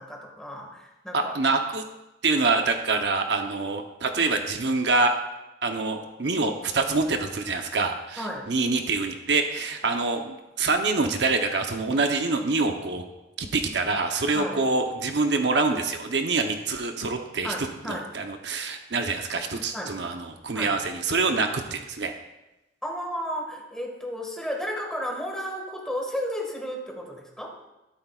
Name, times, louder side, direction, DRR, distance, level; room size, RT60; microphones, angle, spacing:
voice 1, 0.0-1.3 8.2-8.5 14.3-14.6 17.4-18.1 19.7-20.0 20.5-20.8 22.8-27.6, equal, 5° left, -1 dB, 1.8 m, -33 dB
voice 2, 1.1-1.8 2.2-5.1 5.6-13.0 13.4-17.5 17.9-22.1, right 3 dB, 70° right, 5 dB, 0.9 m, -25 dB
12.5 x 12.5 x 2.4 m, 1.0 s
head